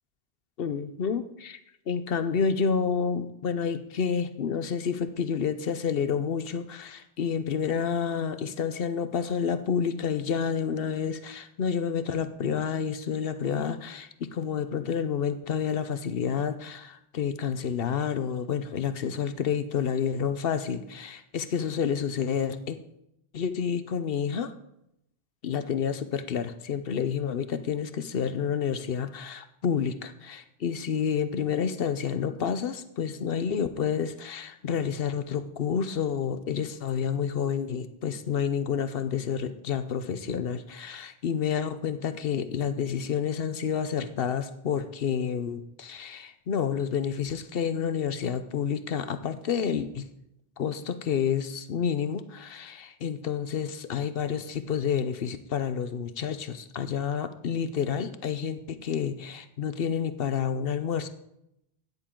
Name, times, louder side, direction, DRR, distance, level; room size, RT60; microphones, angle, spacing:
voice 1, 0.6-1.6 1.9-22.8 23.3-24.5 25.4-50.1 50.6-61.1, left 7 dB, 65° left, 11 dB, 0.9 m, -29 dB
13.0 x 9.6 x 3.8 m, 0.80 s
omnidirectional pair, 1.1 m